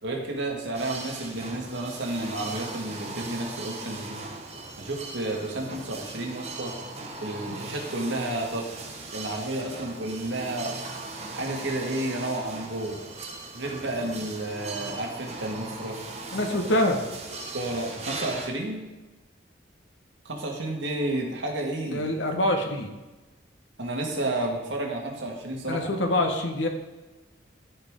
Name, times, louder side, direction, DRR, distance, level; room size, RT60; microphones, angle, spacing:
voice 1, 0.0-4.2 4.8-6.8 7.2-10.8 11.3-13.0 13.5-16.1 16.5-16.7 17.5-18.9 20.3-22.1 23.8-25.9, right 1 dB, 75° right, 0 dB, 1.8 m, -31 dB
sound 1, 0.7-18.5, right 3 dB, 35° right, 1.2 m, -39 dB
voice 2, 16.3-17.0 21.9-22.9 25.7-26.7, left 1 dB, 85° left, 3 dB, 1.3 m, -25 dB
14.0 x 4.8 x 3.7 m, 1.2 s
head